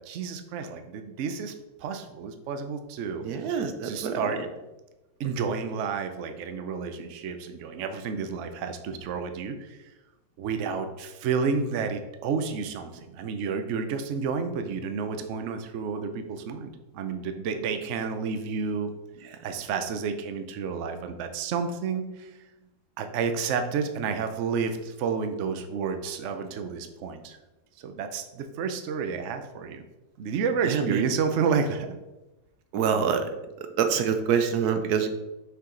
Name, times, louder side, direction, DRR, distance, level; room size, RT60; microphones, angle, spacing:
voice 1, 0.0-1.5 1.8-3.2 3.5-4.4 5.2-9.8 10.4-18.9 19.4-22.3 23.0-27.4 27.8-29.8 30.2-31.9, right 5 dB, 85° right, 7 dB, 0.6 m, -30 dB
voice 2, 3.2-4.2 30.7-31.0 32.7-33.2 33.8-35.1, right 7 dB, 65° right, 8 dB, 1.0 m, -25 dB
6.5 x 4.7 x 3.8 m, 1.0 s
omnidirectional pair, 2.1 m